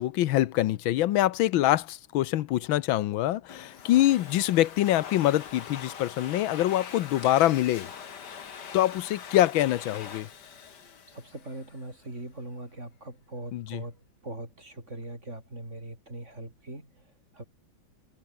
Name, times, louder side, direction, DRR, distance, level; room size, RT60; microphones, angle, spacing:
voice 1, 0.0-7.9 8.7-10.3 13.5-13.8, left 14 dB, 85° left, 1.6 m, -25 dB
Domestic sounds home sounds, 3.5-11.9, left 7 dB, 60° left, 2.2 m, -43 dB
sound 1, 7.2-10.2, left 3 dB, 40° left, 4.3 m, -55 dB
voice 2, 11.1-17.4, right 1 dB, 35° right, 7.4 m, -41 dB
omnidirectional pair, 2.1 m